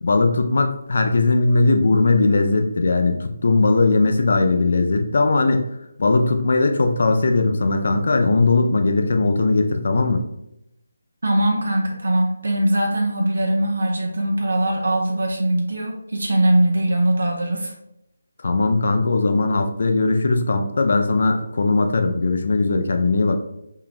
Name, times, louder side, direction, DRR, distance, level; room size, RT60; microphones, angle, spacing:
voice 1, 0.0-5.6 6.0-10.2 18.4-23.4, left 3 dB, 50° left, 5 dB, 0.5 m, -19 dB
voice 2, 11.2-17.7, right 1 dB, 60° right, 0 dB, 0.8 m, -21 dB
4.4 x 3.7 x 2.5 m, 0.81 s
figure-of-eight pair, 155°, 0 cm